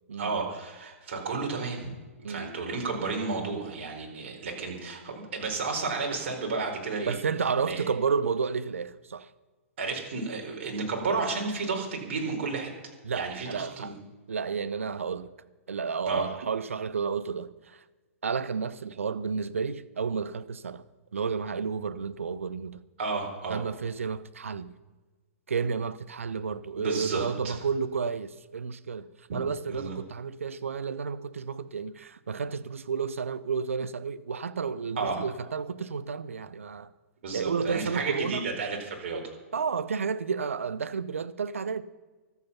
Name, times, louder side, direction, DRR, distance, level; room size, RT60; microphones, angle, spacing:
voice 1, 0.2-2.0 2.3-7.2 7.7-7.9 9.8-13.9 16.0-16.3 23.0-23.6 26.7-27.6 29.7-29.9 35.0-35.2 37.2-39.3, right 4 dB, 50° right, 4.5 m, -32 dB
voice 2, 7.1-9.3 13.0-13.9 14.3-15.3 15.7-17.8 18.2-20.8 21.1-22.8 23.5-24.7 25.5-29.1 29.3-36.9 37.3-38.5 39.5-41.8, right 5 dB, 65° right, 0.8 m, -31 dB
24.5 x 8.3 x 5.6 m
figure-of-eight pair, 115°, 8 cm